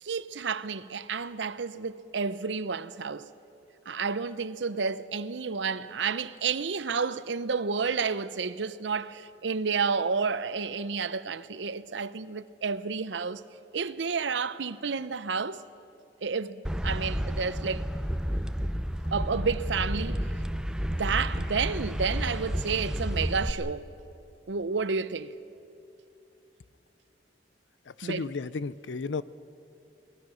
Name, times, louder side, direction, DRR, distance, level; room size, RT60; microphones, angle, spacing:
voice 1, 0.0-3.3 3.9-13.4 13.7-15.6 16.2-17.8 19.1-20.2 20.9-23.9 24.5-25.4 28.0-28.3, right 5 dB, 80° right, 0.7 m, -30 dB
sound 1, 16.6-23.5, equal, 5° right, 0.6 m, -31 dB
voice 2, 27.9-29.2, left 4 dB, 85° left, 0.6 m, -33 dB
25.0 x 19.5 x 6.3 m
head